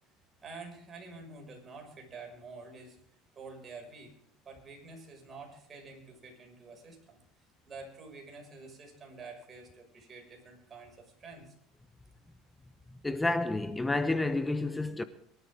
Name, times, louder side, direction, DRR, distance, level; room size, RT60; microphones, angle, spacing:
voice 1, 0.4-3.0 3.3-4.1 4.4-7.2 7.7-11.5, right 3 dB, 30° right, 6.2 m, -48 dB
voice 2, 13.0-15.0, left 2 dB, 10° left, 0.9 m, -30 dB
23.0 x 12.5 x 3.7 m
supercardioid pair, 120°, 0 cm